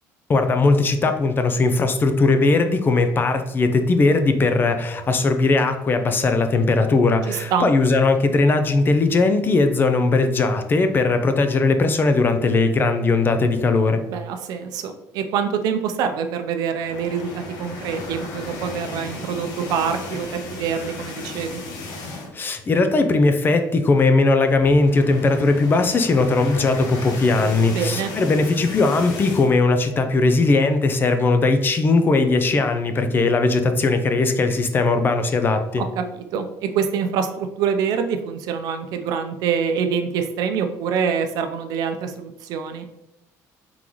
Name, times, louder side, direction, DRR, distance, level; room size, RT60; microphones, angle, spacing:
voice 1, 0.3-14.0 22.3-35.8, left 3 dB, 30° left, 8 dB, 0.5 m, -19 dB
voice 2, 7.3-7.7 14.1-21.6 27.7-28.1 35.8-42.8, right 7 dB, 75° right, 7 dB, 0.5 m, -25 dB
sound 1, 16.7-22.5 22.9-23.1 23.3-23.4 24.5-29.5, left 2 dB, 70° left, 1.0 m, -35 dB
3.7 x 3.7 x 3.0 m, 0.90 s
cardioid pair, 105°, 7 cm